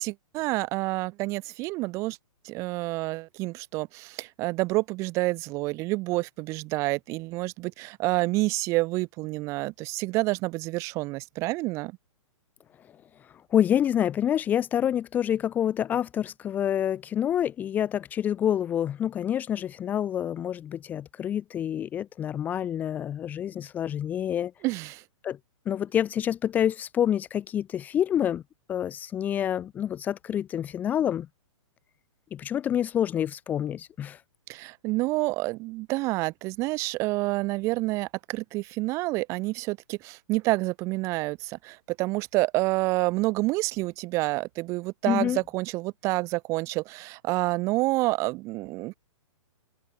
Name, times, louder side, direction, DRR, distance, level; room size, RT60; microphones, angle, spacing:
voice 1, 0.0-2.2 2.4-11.9 24.6-25.0 34.5-49.0, right 21 dB, 15° right, 2.5 m, -28 dB
voice 2, 13.5-24.5 25.2-25.4 25.7-28.4 28.7-31.3 32.3-34.2 45.1-45.4, left 10 dB, 10° left, 2.0 m, -27 dB
open air
hypercardioid pair, 180°, 17 cm